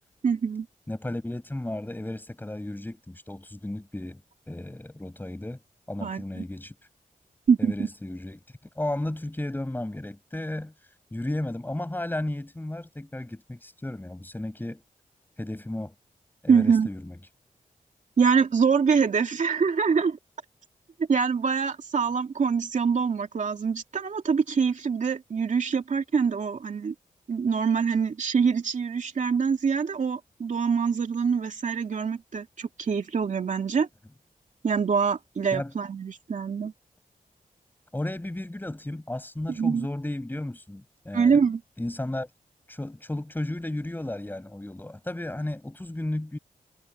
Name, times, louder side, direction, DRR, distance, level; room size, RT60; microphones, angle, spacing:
voice 1, 0.2-0.7 6.0-6.4 7.5-7.9 16.5-16.9 18.2-20.2 21.1-26.9 27.3-33.9 34.6-36.7 39.5-39.9 41.1-41.6, right 6 dB, 60° right, 2.6 m, -24 dB
voice 2, 0.9-5.6 5.9-6.7 7.6-8.4 8.7-10.7 11.1-14.8 15.4-15.9 16.4-17.3 35.5-35.7 37.9-41.5 41.8-42.3 42.7-46.4, left 1 dB, 15° left, 6.8 m, -34 dB
wide cardioid pair, 120°, 15 cm